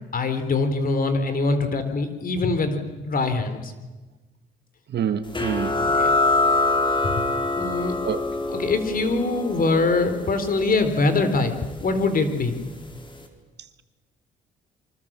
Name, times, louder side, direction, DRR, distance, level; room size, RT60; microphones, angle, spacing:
voice 1, 0.1-2.8 3.0-3.7 5.7-6.1 7.0-7.2 7.6-7.9 8.5-11.5 11.8-12.6, left 3 dB, 45° left, 3.7 m, -23 dB
voice 2, 4.9-5.7 8.0-8.2, right 8 dB, 60° right, 1.6 m, -26 dB
sound 1, 5.3-12.6, left 2 dB, 25° left, 4.2 m, -25 dB
27.5 x 24.5 x 7.5 m
cardioid pair, 90°, 20 cm